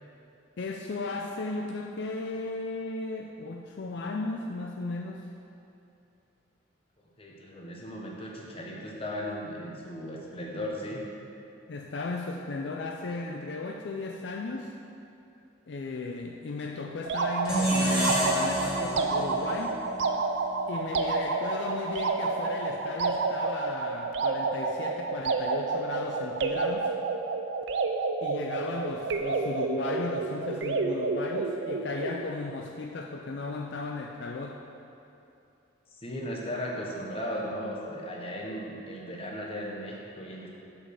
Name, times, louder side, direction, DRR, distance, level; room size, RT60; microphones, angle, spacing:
voice 1, 0.6-5.3 11.7-14.8 15.7-19.8 20.7-26.9 28.2-34.6, left 3 dB, 60° left, 2 dB, 0.4 m, -36 dB
voice 2, 7.2-11.1 36.0-40.5, equal, 30° left, -2 dB, 1.0 m, -36 dB
sound 1, 17.1-32.3, right 3 dB, 65° right, 0.5 m, -30 dB
sound 2, 17.4-20.6, equal, 5° right, 1.9 m, -29 dB
7.2 x 5.2 x 6.5 m, 2.8 s
head